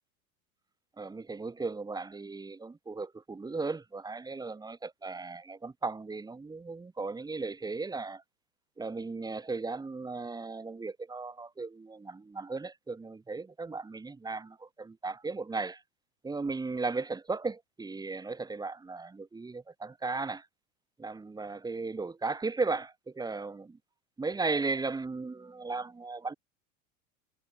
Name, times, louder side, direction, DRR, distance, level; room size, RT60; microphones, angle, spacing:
voice 1, 1.0-8.2 8.8-15.8 16.2-20.5 21.0-23.8 24.2-26.3, right 3 dB, 10° right, 1.3 m, -36 dB
figure-of-eight pair, 85°, 41 cm